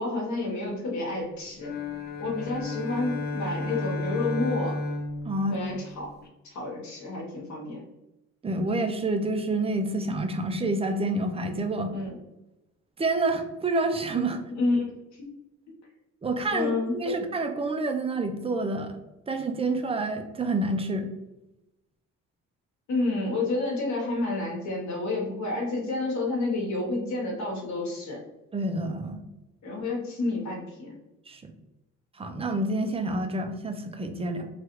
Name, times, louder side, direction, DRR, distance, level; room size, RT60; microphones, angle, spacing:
voice 1, 0.0-1.7 2.2-4.8 5.5-6.1 6.4-7.8 11.9-12.1 14.5-14.9 15.1-15.3 16.5-16.9 22.9-28.2 29.6-31.0, left 2 dB, 70° left, -1 dB, 1.0 m, -29 dB
sound 1, 1.6-6.3, left 2 dB, 35° left, 0.6 m, -33 dB
voice 2, 5.2-5.6 8.4-11.9 13.0-14.4 16.2-19.0 19.3-21.1 28.5-29.2 31.3-31.5 32.2-34.5, right 2 dB, 20° right, 6 dB, 0.4 m, -28 dB
3.2 x 2.3 x 2.9 m, 0.93 s
cardioid pair, 90°, 30 cm